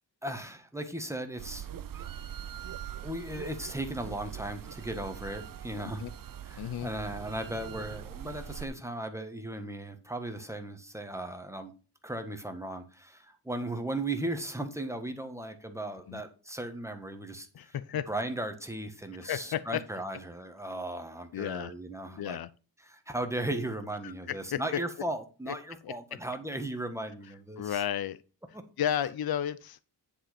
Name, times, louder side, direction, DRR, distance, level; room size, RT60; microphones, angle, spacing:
voice 1, 0.2-1.7 3.0-6.1 6.4-11.7 12.0-17.7 18.1-22.4 22.8-27.8 28.5-28.6, right 1 dB, 5° right, 1.3 m, -37 dB
sound 1, 1.4-8.7, right 10 dB, 55° right, 0.7 m, -42 dB
voice 2, 5.8-6.1 6.6-6.9 16.1-16.2 17.5-18.1 19.2-19.8 21.3-21.7 22.2-22.5 24.0-24.8 25.5-25.6 25.8-26.2 27.6-28.2 28.8-29.9, left 10 dB, 60° left, 0.6 m, -33 dB
10.0 x 5.5 x 4.3 m
wide cardioid pair, 125°, 41 cm